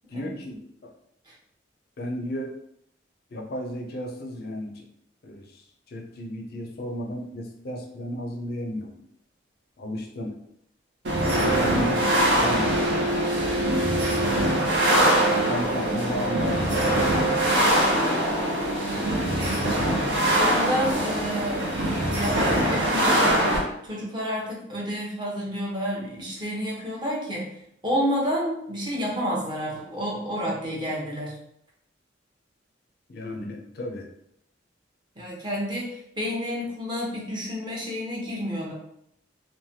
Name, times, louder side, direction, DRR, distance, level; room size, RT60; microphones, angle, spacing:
voice 1, 0.1-0.9 2.0-2.6 3.3-4.9 5.2-8.9 9.8-10.4 11.3-13.2 15.2-18.1 33.1-34.1, equal, 55° left, 2 dB, 0.4 m, -34 dB
sound 1, 11.0-23.6, right 1 dB, 65° right, 0.8 m, -23 dB
voice 2, 19.3-20.0 20.4-21.7 22.1-23.5 23.8-27.5 27.8-31.4 35.2-38.7, equal, 25° right, -4 dB, 0.8 m, -30 dB
3.2 x 2.1 x 2.7 m, 0.74 s
head